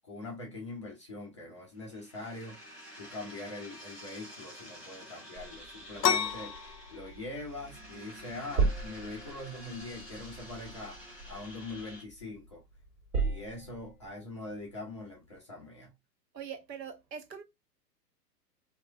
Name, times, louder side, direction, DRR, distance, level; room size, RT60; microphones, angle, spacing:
voice 1, 0.0-2.6 3.0-11.0 11.3-12.6 13.2-15.9, left 2 dB, 20° left, 0.3 m, -43 dB
sound 1, 1.7-12.0, equal, ahead, 1.4 m, -50 dB
sound 2, 5.4-7.9 8.2-12.4 12.8-14.1, right 4 dB, 45° right, 1.8 m, -36 dB
sound 3, 6.0-15.4, left 8 dB, 75° left, 0.6 m, -38 dB
voice 2, 16.3-17.4, right 7 dB, 85° right, 0.8 m, -42 dB
2.9 x 2.4 x 2.2 m
figure-of-eight pair, 110°, 49 cm